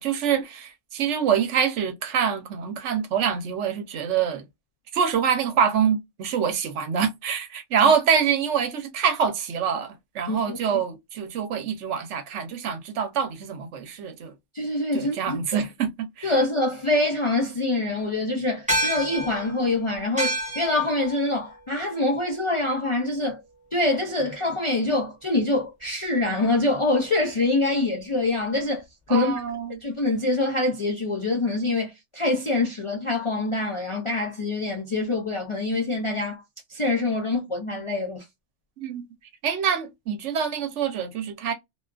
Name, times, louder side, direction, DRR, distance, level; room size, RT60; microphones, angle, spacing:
voice 1, 0.0-4.4 4.9-14.3 14.9-16.3 29.1-29.8 38.8-39.1 39.4-41.5, right 7 dB, 75° right, 1.0 m, -25 dB
voice 2, 10.3-10.6 14.5-15.6 16.2-23.4 23.7-28.8 29.1-29.4 29.8-36.4 36.7-38.2, left 2 dB, 45° left, 0.4 m, -25 dB
sound 1, 18.7-23.4, right 1 dB, 5° right, 0.7 m, -31 dB
2.7 x 2.4 x 2.2 m
omnidirectional pair, 1.3 m